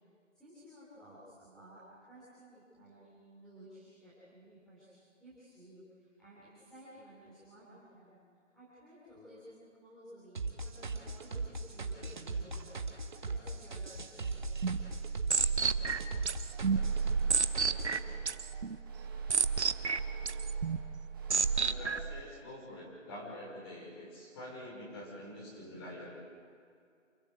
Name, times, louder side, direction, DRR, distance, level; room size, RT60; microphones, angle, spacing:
voice 1, 0.3-8.2 8.5-14.5, equal, ahead, -13 dB, 3.5 m, -55 dB
sound 1, 10.3-18.0, right 3 dB, 40° right, 1.8 m, -38 dB
sound 2, 14.3-22.2, right 5 dB, 60° right, 1.0 m, -32 dB
sound 3, 15.8-21.8, right 4 dB, 15° right, 1.7 m, -54 dB
voice 2, 21.6-26.2, left 1 dB, 20° left, -3 dB, 5.7 m, -46 dB
28.5 x 15.0 x 8.0 m, 2.3 s
figure-of-eight pair, 165°, 38 cm